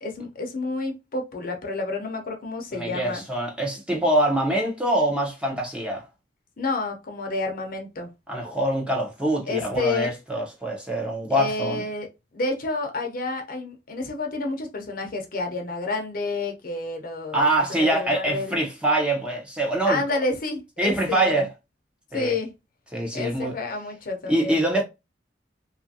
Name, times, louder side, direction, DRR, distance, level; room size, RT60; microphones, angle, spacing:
voice 1, 0.0-3.2 6.6-8.1 9.5-10.1 11.3-12.1 12.3-18.6 19.8-21.5 22.1-22.5 23.1-24.6, left 3 dB, 50° left, 0.6 m, -29 dB
voice 2, 2.7-6.0 8.3-11.8 17.3-20.0 20.8-21.5 22.1-22.4 22.9-23.5 24.3-24.8, right 1 dB, 5° right, 0.6 m, -24 dB
2.7 x 2.4 x 2.6 m
head